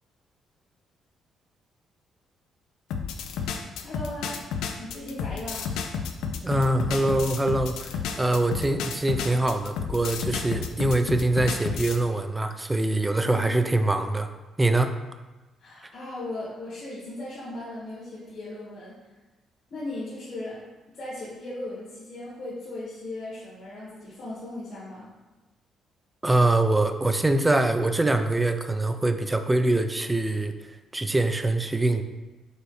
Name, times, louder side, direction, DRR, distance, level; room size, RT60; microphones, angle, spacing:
sound 1, 2.9-12.0, left 6 dB, 90° left, 0.3 m, -31 dB
voice 1, 3.4-5.7 10.0-10.1 13.2-13.7 15.6-18.9 19.7-20.6 21.0-25.1, left 1 dB, 65° left, -9 dB, 1.5 m, -37 dB
voice 2, 6.4-7.9 8.2-14.3 14.6-14.9 26.2-30.5 30.9-32.0, right 2 dB, 15° right, 8 dB, 0.4 m, -24 dB
5.4 x 3.0 x 3.1 m, 1.1 s
cardioid pair, 90°, 0 cm